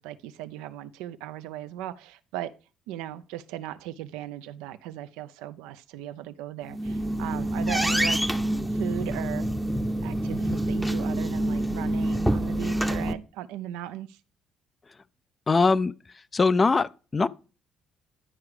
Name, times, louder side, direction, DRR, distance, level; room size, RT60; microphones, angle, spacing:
voice 1, 0.0-2.5 2.9-8.2 8.7-9.5 10.0-14.2, right 13 dB, 90° right, 0.5 m, -37 dB
sound 1, 6.6-13.1, right 1 dB, ahead, 0.8 m, -27 dB
voice 2, 15.5-15.9 16.3-17.3, left 4 dB, 30° left, 0.5 m, -21 dB
11.0 x 4.7 x 5.0 m
supercardioid pair, 75°, 0 cm